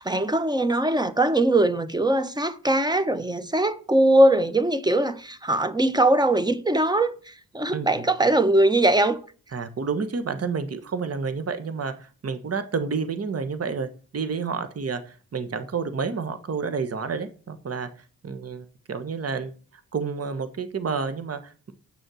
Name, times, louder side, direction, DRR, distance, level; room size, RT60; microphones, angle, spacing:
voice 1, 0.0-9.2, right 1 dB, 10° right, 1.1 m, -21 dB
voice 2, 7.7-8.0 9.5-17.9 18.2-19.5 19.9-21.7, right 5 dB, 40° right, 1.4 m, -30 dB
8.3 x 6.4 x 6.3 m
cardioid pair, 65°, 37 cm